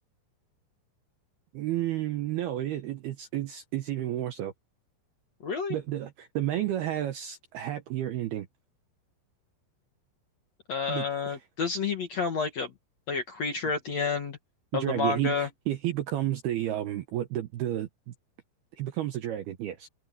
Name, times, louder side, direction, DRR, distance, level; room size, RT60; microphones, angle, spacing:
voice 1, 1.5-4.5 5.7-8.5 10.9-11.4 14.7-18.1 18.8-19.9, right 13 dB, 75° right, 2.4 m, -31 dB
voice 2, 5.4-5.8 10.7-12.7 13.1-14.4 14.7-15.5, left 5 dB, 65° left, 1.6 m, -30 dB
omnidirectional pair, 5.9 m